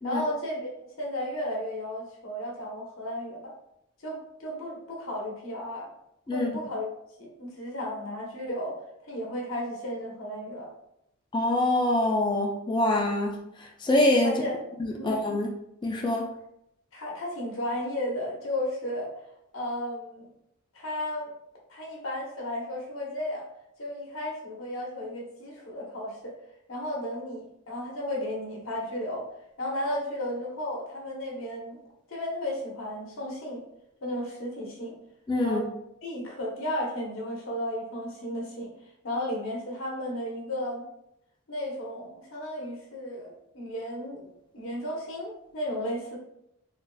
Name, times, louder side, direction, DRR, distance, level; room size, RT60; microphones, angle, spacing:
voice 1, 0.0-3.5 4.0-5.9 6.3-6.9 7.2-8.8 9.1-10.7 14.2-14.6 14.9-15.1 16.9-19.1 19.5-20.3 20.7-21.3 21.7-23.5 23.8-26.3 26.7-29.3 29.6-31.8 32.1-33.6 34.0-35.0 35.4-35.7 36.0-38.7 39.0-40.8 41.5-46.2, left 1 dB, 65° left, -2 dB, 0.9 m, -34 dB
voice 2, 11.3-13.4 13.8-14.3 14.8-15.5 15.8-16.3 35.3-35.6, left 1 dB, 20° left, 1 dB, 0.3 m, -25 dB
3.6 x 2.6 x 2.2 m, 0.79 s
head